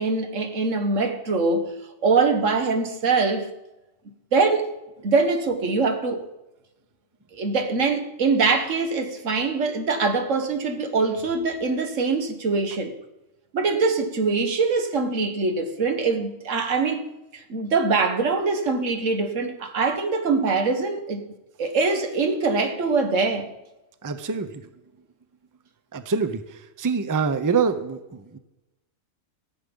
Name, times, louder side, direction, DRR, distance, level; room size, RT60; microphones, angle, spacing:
voice 1, 0.0-1.7 2.0-3.5 4.3-4.7 5.0-6.3 7.3-12.9 13.5-17.1 17.3-21.3 21.6-23.5, right 4 dB, 90° right, 1.7 m, -23 dB
voice 2, 24.0-24.5 25.9-26.4 26.8-28.4, right 5 dB, 25° right, 0.5 m, -25 dB
15.0 x 7.9 x 5.3 m
omnidirectional pair, 1.3 m